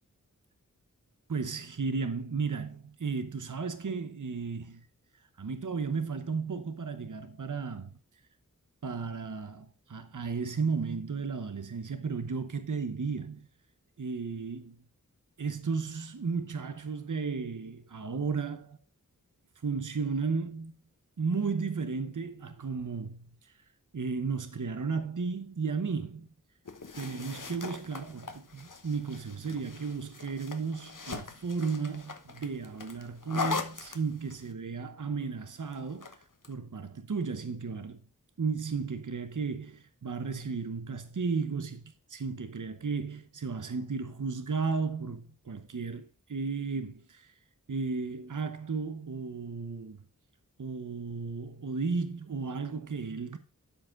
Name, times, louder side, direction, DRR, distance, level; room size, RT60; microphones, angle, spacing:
voice 1, 1.3-4.9 5.4-7.9 8.8-13.5 14.0-14.8 15.4-18.8 19.6-20.7 21.2-23.6 23.9-26.3 27.0-36.2 36.5-38.0 38.4-41.8 42.1-47.3 47.7-50.0 50.6-53.4, right 5 dB, 60° right, 0.9 m, -34 dB
sound 1, 26.6-34.5 35.7-36.5, left 4 dB, 65° left, 1.1 m, -40 dB
12.5 x 5.0 x 3.7 m
wide cardioid pair, 45°, 34 cm